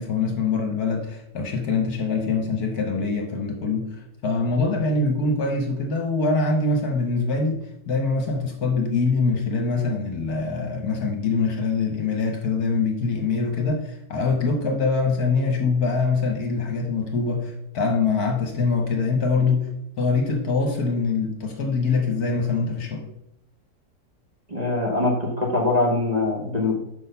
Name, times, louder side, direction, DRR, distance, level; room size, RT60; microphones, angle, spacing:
voice 1, 0.0-3.9 4.2-7.6 7.9-19.7 20.0-23.1, left 4 dB, 60° left, 3 dB, 1.4 m, -24 dB
voice 2, 24.5-26.8, left 2 dB, 25° right, -2 dB, 1.4 m, -23 dB
6.3 x 5.4 x 5.5 m, 0.78 s
omnidirectional pair, 2.0 m